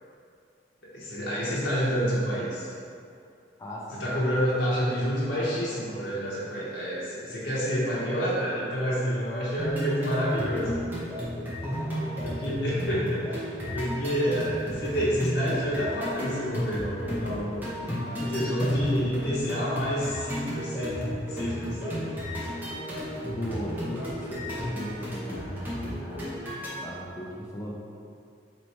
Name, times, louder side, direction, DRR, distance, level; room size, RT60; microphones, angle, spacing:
voice 1, 0.9-2.7 3.9-10.8 12.2-17.6 18.3-22.1, equal, 80° left, -9 dB, 0.9 m, -28 dB
voice 2, 3.6-4.1 11.6-12.2 13.7-13.8 17.9-18.9 21.7-21.8 23.3-26.4 26.8-27.7, equal, 15° left, -5 dB, 0.4 m, -37 dB
sound 1, 9.6-26.7, equal, 10° right, 0.7 m, -34 dB
3.2 x 3.0 x 4.1 m, 2.4 s
head